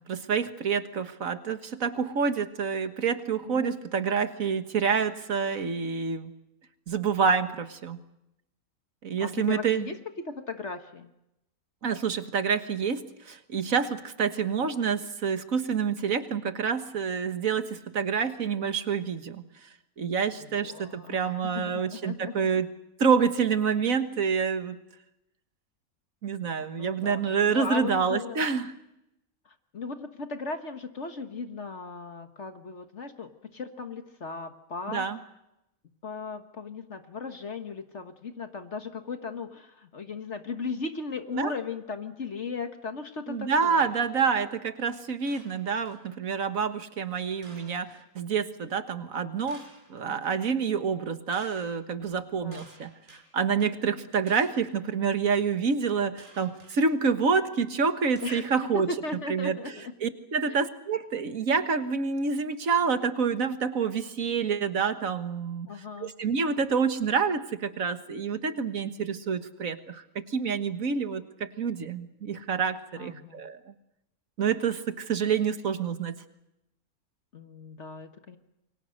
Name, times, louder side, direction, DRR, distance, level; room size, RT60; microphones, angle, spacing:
voice 1, 0.1-6.3 6.9-8.0 9.0-9.9 11.8-13.0 13.3-19.4 20.0-22.7 23.0-24.8 26.2-28.7 34.9-35.2 41.3-41.5 43.3-49.6 49.9-52.9 53.3-58.9 59.3-59.6 60.0-65.7 66.0-73.6 74.4-76.1, right 6 dB, 65° right, 9 dB, 1.8 m, -27 dB
voice 2, 9.2-11.1 20.4-22.5 26.6-28.4 29.4-35.1 36.0-43.9 50.1-50.2 52.4-52.6 58.2-59.9 60.5-60.6 65.6-66.1 73.0-73.4 77.3-78.4, left 4 dB, 50° left, 7 dB, 1.6 m, -37 dB
sound 1, 45.3-46.1 47.4-48.0 49.5-50.0 51.3-51.7 52.5-53.2 54.3-54.7 56.2-56.7 58.1-58.9, right 2 dB, 35° right, 5.1 m, -53 dB
28.5 x 23.5 x 6.5 m, 0.87 s
omnidirectional pair, 1.6 m